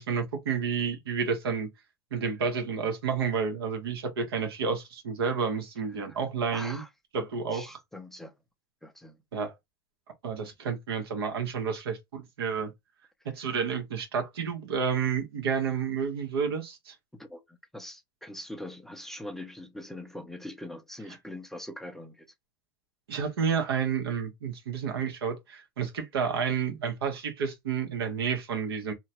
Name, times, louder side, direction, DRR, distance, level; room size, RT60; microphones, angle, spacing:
voice 1, 0.0-1.7 2.1-6.8 7.1-7.8 9.3-9.5 10.2-12.7 13.2-16.9 23.1-28.9, right 6 dB, 90° right, 1.2 m, -30 dB
voice 2, 6.5-6.9 7.5-8.3 8.8-9.2 17.1-22.3, left 1 dB, 5° left, 0.4 m, -42 dB
2.9 x 2.3 x 2.8 m
supercardioid pair, 145°, 12 cm